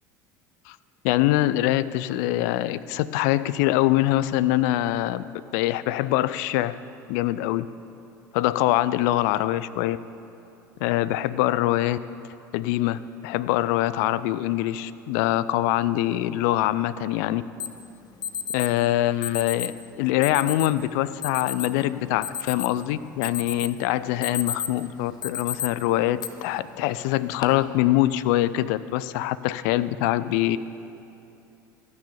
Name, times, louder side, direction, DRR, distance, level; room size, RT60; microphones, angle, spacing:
voice 1, 1.0-5.3 5.5-6.8 7.1-7.7 8.3-10.0 10.8-12.0 12.5-17.4 18.5-19.7 20.0-30.6, left 15 dB, 60° left, 16 dB, 0.4 m, -24 dB
Alarm, 17.6-17.7 18.2-18.7 19.2-19.7 20.2-20.7 21.2-21.7 22.1-22.8 23.2-23.7 24.1-24.8 25.2-25.7 26.2-26.3 27.1-27.4, left 8 dB, 40° left, 0.8 m, -31 dB
13.0 x 6.4 x 7.0 m, 2.8 s
figure-of-eight pair, 70°, 11 cm